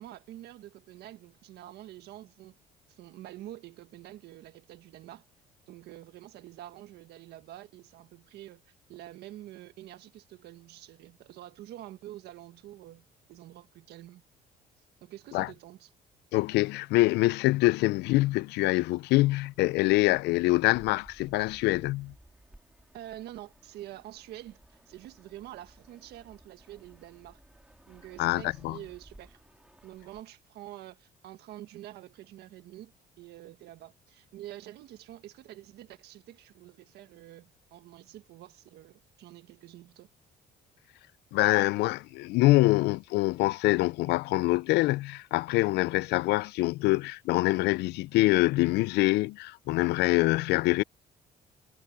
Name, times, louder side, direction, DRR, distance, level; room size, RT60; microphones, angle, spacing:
voice 1, 0.0-2.5 2.9-5.2 5.7-14.2 15.0-15.9 22.9-27.4 27.9-29.4 29.8-32.9 33.2-40.1, right 14 dB, 75° right, 1.5 m, -47 dB
voice 2, 16.3-22.1 28.2-28.8 41.3-50.8, left 20 dB, 80° left, 0.4 m, -25 dB
Fixed-wing aircraft airplane, 19.2-30.2, right 1 dB, 5° right, 3.3 m, -58 dB
cardioid pair, 110°, 17 cm